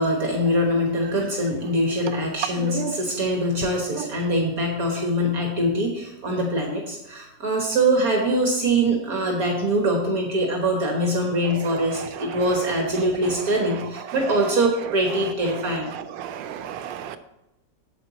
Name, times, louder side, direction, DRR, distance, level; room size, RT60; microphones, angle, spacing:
voice 1, 0.0-15.9, right 1 dB, 55° right, 1 dB, 1.7 m, -23 dB
voice 2, 2.6-2.9 16.2-17.2, right 8 dB, 90° right, 11 dB, 1.4 m, -32 dB
8.8 x 7.9 x 4.0 m, 0.95 s
omnidirectional pair, 1.9 m